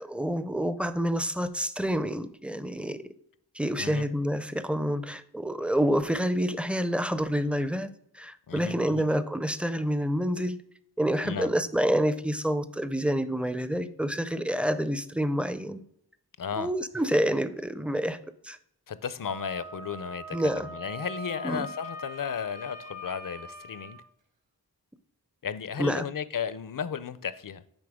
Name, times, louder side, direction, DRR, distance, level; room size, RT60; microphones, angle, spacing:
voice 1, 0.0-3.0 3.5-10.6 11.0-15.8 16.6-18.2 18.4-18.6 20.3-20.7 21.4-21.7 25.8-26.0, equal, 5° right, 0.4 m, -28 dB
voice 2, 8.5-9.0 11.2-11.5 16.4-16.7 18.9-24.0 25.4-27.6, left 7 dB, 55° left, 0.5 m, -34 dB
Wind instrument woodwind instrument, 19.2-24.0, equal, 50° right, 1.0 m, -42 dB
9.9 x 3.7 x 3.5 m
wide cardioid pair, 50°, 40 cm